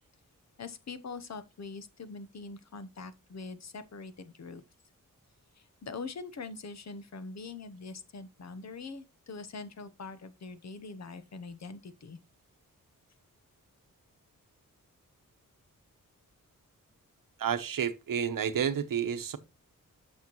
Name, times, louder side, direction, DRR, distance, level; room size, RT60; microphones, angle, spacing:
voice 1, 0.6-4.6 5.6-12.2, left 4 dB, 55° left, 0.8 m, -43 dB
voice 2, 17.4-19.4, right 8 dB, 75° right, 0.9 m, -30 dB
8.4 x 6.4 x 3.0 m
wide cardioid pair, 175°, 33 cm